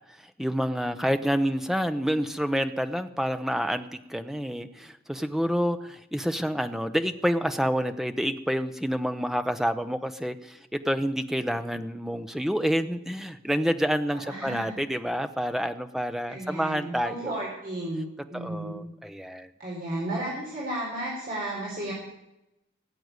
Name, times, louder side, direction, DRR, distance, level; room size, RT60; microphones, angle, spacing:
voice 1, 0.4-17.4 18.3-19.5, equal, ahead, 9 dB, 0.7 m, -28 dB
voice 2, 14.1-14.7 16.3-18.8 19.6-21.9, right 1 dB, 40° right, -5 dB, 4.2 m, -33 dB
17.5 x 7.9 x 9.5 m, 0.89 s
head